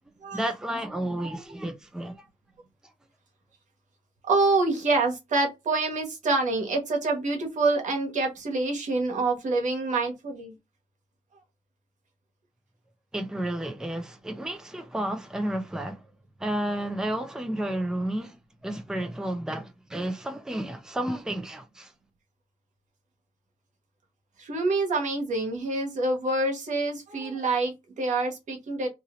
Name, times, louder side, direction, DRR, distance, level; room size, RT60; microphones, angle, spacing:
voice 1, 0.3-2.3 13.1-16.1 16.4-18.4 18.6-21.9, right 1 dB, 5° right, 0.6 m, -31 dB
voice 2, 4.3-10.5 24.4-28.9, right 3 dB, 75° right, 1.2 m, -26 dB
2.7 x 2.7 x 3.0 m
cardioid pair, 80°, 13 cm